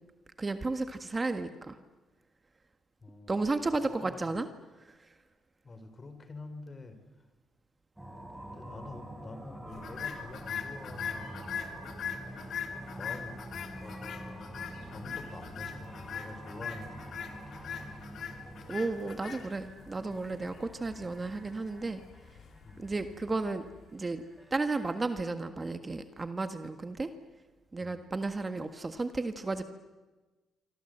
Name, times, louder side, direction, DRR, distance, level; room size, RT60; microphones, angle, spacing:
voice 1, 0.4-1.7 3.3-4.5 18.7-22.0 22.8-23.6 23.9-24.2 24.5-27.1 27.7-29.6, right 3 dB, 25° right, 8 dB, 1.6 m, -33 dB
voice 2, 3.0-3.7 4.0-4.4 5.6-7.0 8.2-11.7 12.9-14.6 14.9-17.7 22.6-22.9 27.8-27.9, left 3 dB, 30° left, 9 dB, 4.4 m, -47 dB
sound 1, 8.0-25.0, right 1 dB, 10° right, 6.1 m, -47 dB
sound 2, 9.8-24.1, left 7 dB, 65° left, 3.3 m, -42 dB
27.0 x 25.0 x 8.0 m, 1.2 s
cardioid pair, 90°, 0 cm